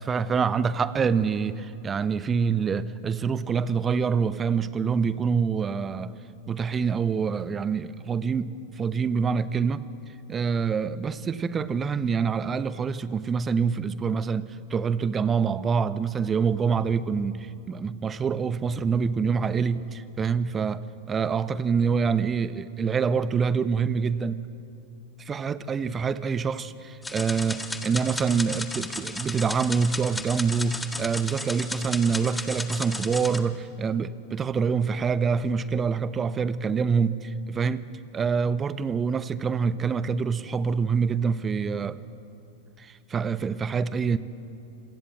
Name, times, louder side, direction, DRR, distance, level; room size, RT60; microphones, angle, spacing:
voice 1, 0.0-6.1 6.5-9.9 10.3-24.4 25.2-37.8 38.1-42.0 42.8-44.2, right 6 dB, 20° right, 1.0 m, -26 dB
sound 1, 27.0-33.4, left 2 dB, 5° left, 1.7 m, -34 dB
27.0 x 25.5 x 7.7 m
figure-of-eight pair, 90°, 0 cm